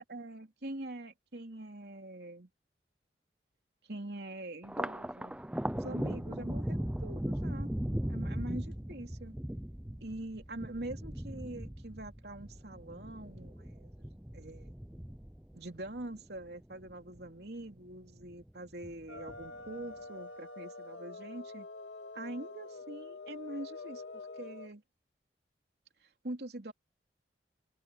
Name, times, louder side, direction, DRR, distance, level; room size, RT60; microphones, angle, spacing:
voice 1, 0.0-2.5 3.9-5.4 5.7-7.7 8.1-9.4 10.0-14.7 15.5-21.7 22.1-24.8 26.2-26.7, right 1 dB, 70° right, 3.0 m, -44 dB
Thunder, 4.6-17.3 17.7-18.5 18.8-19.7, equal, 5° right, 0.5 m, -38 dB
sound 1, 19.1-24.7, left 3 dB, 85° left, 2.0 m, -46 dB
head